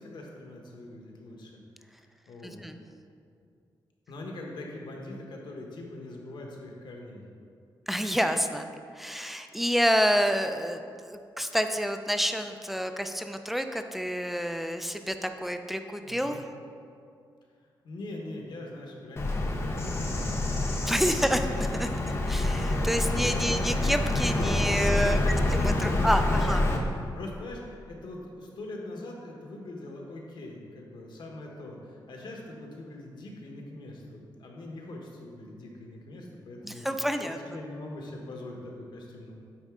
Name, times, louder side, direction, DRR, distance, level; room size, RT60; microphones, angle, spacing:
voice 1, 0.0-1.6 2.3-2.6 4.1-7.2 16.0-16.4 17.8-21.2 23.0-23.6 24.3-26.8 27.1-36.9 37.2-39.3, left 2 dB, 65° left, 0 dB, 1.1 m, -42 dB
voice 2, 2.4-2.8 7.9-8.7 8.9-16.4 20.9-21.9 22.3-25.2 25.6-26.6 36.6-37.4, equal, ahead, 7 dB, 0.3 m, -28 dB
Bird vocalization bird call bird song, 19.2-26.8, left 2 dB, 30° left, 0.7 m, -27 dB
8.9 x 4.2 x 3.6 m, 2.4 s
wide cardioid pair, 140°, 8 cm